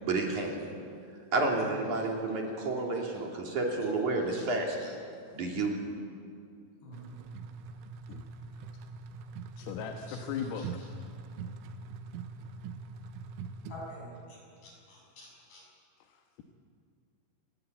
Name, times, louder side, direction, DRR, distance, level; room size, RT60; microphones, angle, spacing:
voice 1, 0.0-0.6 1.3-4.7 5.3-5.7, right 3 dB, 45° right, 0 dB, 3.8 m, -30 dB
voice 2, 2.9-3.2 4.2-4.5 4.8-4.9 6.8-7.2 8.6-8.7 10.0-10.2 10.5-10.9 13.7-15.7, left 1 dB, 55° left, -3 dB, 9.0 m, -50 dB
sound 1, 6.9-13.9, right 4 dB, 80° right, 3.6 m, -43 dB
voice 3, 9.6-10.8 16.0-16.4, left 7 dB, 80° left, 3 dB, 3.9 m, -38 dB
28.0 x 20.0 x 8.3 m, 2.3 s
omnidirectional pair, 5.8 m